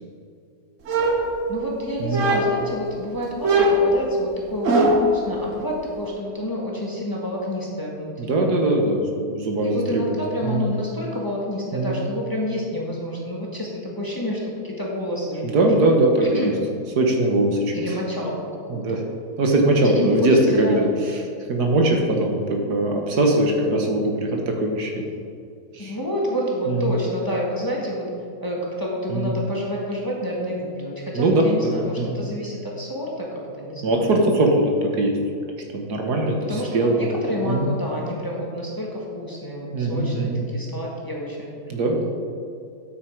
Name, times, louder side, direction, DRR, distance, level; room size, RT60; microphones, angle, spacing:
sound 1, 0.9-1.7 2.1-2.8 3.4-5.2, right 1 dB, 55° right, 1.4 m, -20 dB
voice 1, 1.5-8.4 9.6-15.7 16.2-16.5 17.7-19.0 19.9-20.9 25.8-28.1 28.4-34.2 36.5-41.8, left 1 dB, 15° left, -4 dB, 1.5 m, -29 dB
voice 2, 8.2-10.1 10.4-10.6 11.7-12.0 15.4-16.5 17.0-17.7 18.7-19.0 19.4-20.8 21.5-24.9 25.7-25.9 26.7-26.9 29.1-29.3 31.2-32.2 33.8-35.1 35.7-36.4 36.7-37.0 37.3-37.7 39.7-40.4 41.7-42.0, right 2 dB, 80° right, 1 dB, 1.8 m, -21 dB
8.7 x 8.7 x 4.6 m, 2.5 s
omnidirectional pair, 1.7 m